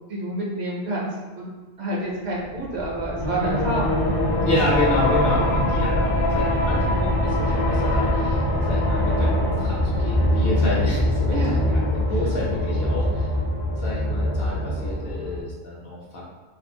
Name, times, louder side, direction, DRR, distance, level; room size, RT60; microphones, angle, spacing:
voice 1, 0.1-1.5 1.8-4.1 10.4-10.8 11.3-11.5 12.2-12.4, right 1 dB, 65° right, -4 dB, 0.8 m, -29 dB
sound 1, 2.4-15.1, equal, 35° right, 0.6 m, -28 dB
sound 2, 3.2-15.4, left 1 dB, 40° left, 0.4 m, -24 dB
voice 2, 4.4-13.3 13.8-16.3, left 1 dB, 60° left, -5 dB, 0.8 m, -29 dB
2.5 x 2.4 x 2.7 m, 1.2 s
omnidirectional pair, 1.3 m